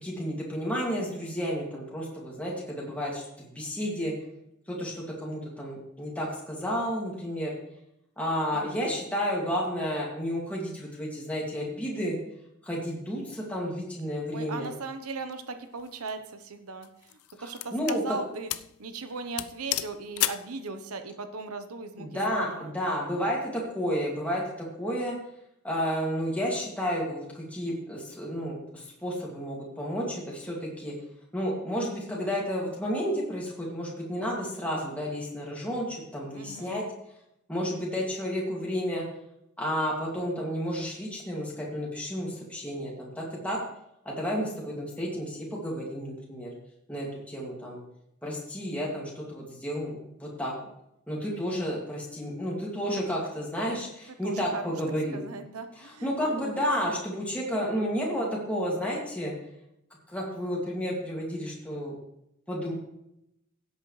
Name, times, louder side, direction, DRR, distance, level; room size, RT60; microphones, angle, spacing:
voice 1, 0.0-4.1 4.7-7.5 8.2-12.2 12.6-14.7 17.4-18.2 22.0-25.1 25.6-30.9 31.3-36.8 37.5-39.0 39.6-43.6 44.0-46.5 46.9-47.8 48.2-50.5 51.1-55.2 55.8-59.3 60.1-62.0 62.5-62.7, equal, 5° left, -4 dB, 2.4 m, -31 dB
voice 2, 14.3-18.5 18.8-22.7 36.3-36.9 54.2-54.7 55.1-56.6, right 4 dB, 80° right, 8 dB, 1.0 m, -38 dB
sound 1, 15.8-16.1 16.8-18.0 18.5-18.7 19.0-19.1 19.4-20.5, left 15 dB, 75° left, 0.4 m, -32 dB
16.5 x 8.3 x 3.3 m, 0.81 s
head